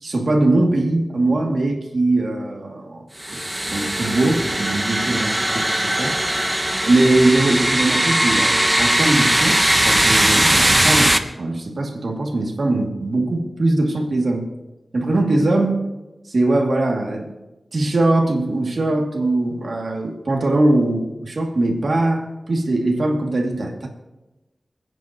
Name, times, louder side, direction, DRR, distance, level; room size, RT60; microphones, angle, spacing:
voice 1, 0.0-3.0 3.3-3.4 3.7-6.2 6.8-14.5 14.9-15.8 16.3-17.3 17.7-23.9, right 2 dB, 75° right, 1 dB, 2.5 m, -21 dB
suspense short, 3.2-11.2, right 1 dB, 20° right, 1.1 m, -19 dB
29.0 x 9.8 x 3.1 m, 1.1 s
cardioid pair, 45°, 0 cm